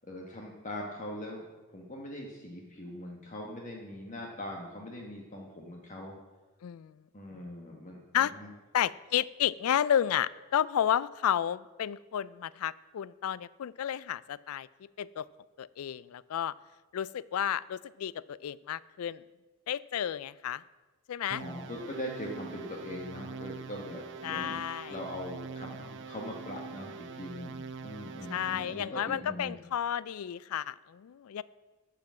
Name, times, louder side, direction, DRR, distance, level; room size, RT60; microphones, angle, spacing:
voice 1, 0.1-1.4 1.7-6.1 7.1-8.5 21.4-24.6 24.9-29.6, left 1 dB, 35° left, 0 dB, 1.3 m, -41 dB
voice 2, 6.6-6.9 8.1-8.3 8.7-14.7 15.0-15.2 15.6-16.5 16.9-19.2 19.7-20.6 21.1-21.4 24.2-24.9 28.3-31.4, left 9 dB, 85° left, 20 dB, 0.4 m, -31 dB
sound 1, 21.3-28.9, right 4 dB, 60° right, 0.7 m, -44 dB
11.5 x 5.9 x 7.4 m, 1.2 s
head